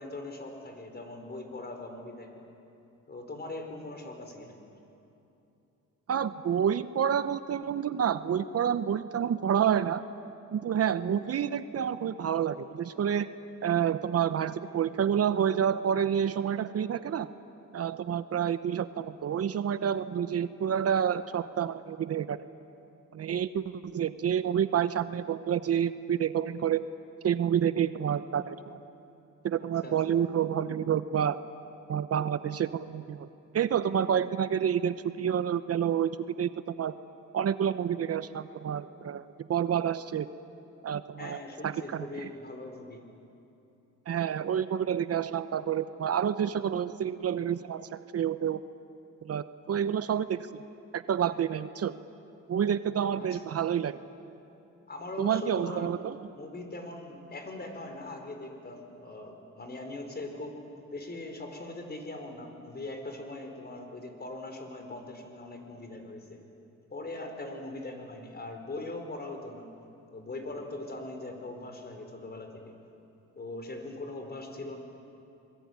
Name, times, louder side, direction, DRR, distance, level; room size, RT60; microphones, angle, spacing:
voice 1, 0.0-2.5 3.1-4.6 29.6-30.0 41.2-43.0 53.2-53.4 54.9-55.9 56.3-60.6 60.9-66.4 66.9-69.7 70.1-72.7 73.3-74.8, left 2 dB, 30° left, 5 dB, 5.1 m, -41 dB
voice 2, 6.1-10.0 10.5-13.3 13.6-17.3 17.7-22.4 23.1-26.9 27.2-28.8 29.4-31.4 31.9-33.3 33.5-36.1 36.4-36.9 37.3-40.3 40.8-41.4 41.6-42.3 44.1-48.6 49.2-50.5 50.9-52.0 52.5-54.0 55.2-56.2, right 8 dB, 55° right, 13 dB, 0.9 m, -29 dB
28.0 x 21.5 x 9.7 m, 2.8 s
cardioid pair, 90°, 30 cm